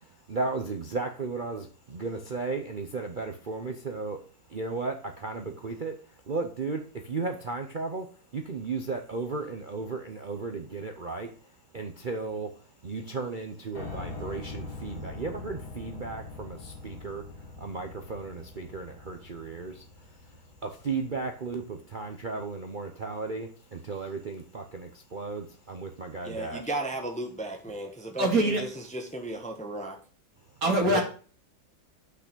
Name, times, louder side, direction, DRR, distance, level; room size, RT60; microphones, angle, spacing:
voice 1, 0.3-4.2 4.5-5.9 6.3-8.1 8.3-11.3 11.7-12.5 12.8-17.2 17.6-19.8 20.6-26.7 30.8-31.0, right 4 dB, 80° right, 0.4 m, -35 dB
Piano, 13.7-21.8, left 3 dB, 55° left, 2.5 m, -43 dB
voice 2, 26.2-30.0, right 1 dB, 5° left, 0.8 m, -35 dB
voice 3, 28.2-28.6 30.6-31.0, right 1 dB, 45° right, 2.5 m, -23 dB
6.1 x 6.0 x 6.7 m
omnidirectional pair, 2.1 m